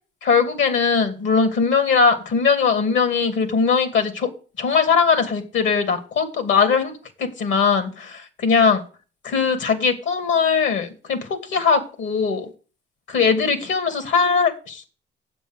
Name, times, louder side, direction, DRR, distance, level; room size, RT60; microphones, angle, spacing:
voice 1, 0.2-4.3 4.6-6.9 7.2-8.8 9.2-12.5 13.1-14.8, left 5 dB, 70° left, 9 dB, 2.5 m, -20 dB
8.9 x 8.0 x 6.5 m, 0.37 s
cardioid pair, 90°, 20 cm